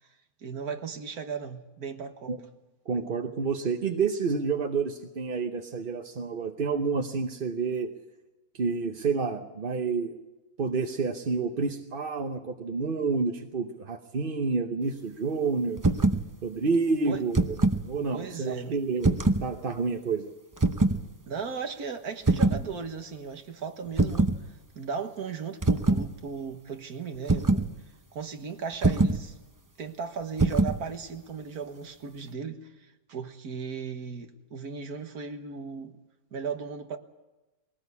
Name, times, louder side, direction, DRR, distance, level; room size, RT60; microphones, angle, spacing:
voice 1, 0.4-2.3 17.1-17.2 18.1-18.8 21.2-24.3 24.8-27.7 28.1-29.4 29.8-36.0 36.3-37.0, right 5 dB, 80° right, 1.9 m, -36 dB
voice 2, 2.9-7.9 8.5-10.1 10.6-15.8 16.4-17.6 17.8-20.3, right 4 dB, 40° right, 1.0 m, -29 dB
sound 1, 15.8-16.2 17.1-17.8 19.0-19.5 20.6-21.0 22.3-22.6 24.0-24.4 25.6-26.1 27.3-27.7 28.8-29.2 30.4-30.8, right 3 dB, 20° right, 0.6 m, -23 dB
21.5 x 18.0 x 8.3 m
omnidirectional pair, 1.6 m